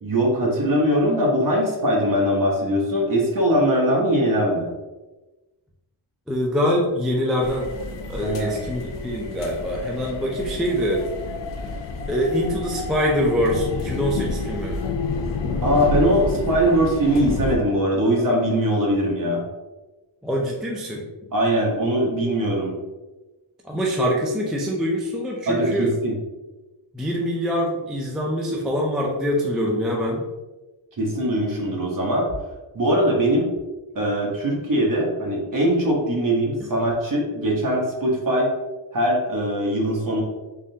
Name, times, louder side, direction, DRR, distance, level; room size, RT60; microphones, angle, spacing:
voice 1, 0.0-4.7 8.2-8.7 15.6-19.4 21.3-22.7 25.5-26.2 31.0-32.3 32.7-33.5 33.9-38.5 38.9-40.2, equal, 40° right, -2 dB, 1.0 m, -21 dB
voice 2, 6.3-7.7 8.1-11.0 12.1-14.8 20.2-21.1 23.6-26.0 26.9-30.2 36.6-36.7, equal, ahead, -2 dB, 0.3 m, -24 dB
sound 1, 7.4-17.5, left 3 dB, 65° left, 0.5 m, -29 dB
3.6 x 3.2 x 2.7 m, 1.1 s
wide cardioid pair, 150°, 48 cm